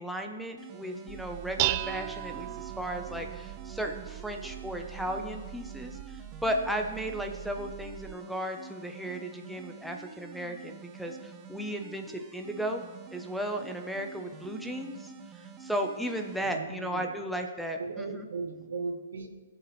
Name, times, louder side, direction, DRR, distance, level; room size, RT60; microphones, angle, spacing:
voice 1, 0.0-12.8 13.1-18.1, equal, ahead, 2 dB, 0.9 m, -35 dB
sound 1, 0.6-16.6, right 6 dB, 25° right, 1.1 m, -48 dB
Dishes pots and pans, 1.1-8.1, right 17 dB, 40° right, 0.4 m, -37 dB
voice 2, 16.3-17.2 17.8-19.3, right 4 dB, 70° right, 6 dB, 1.4 m, -37 dB
18.0 x 7.2 x 3.3 m, 1.2 s
hypercardioid pair, 130°, 0 cm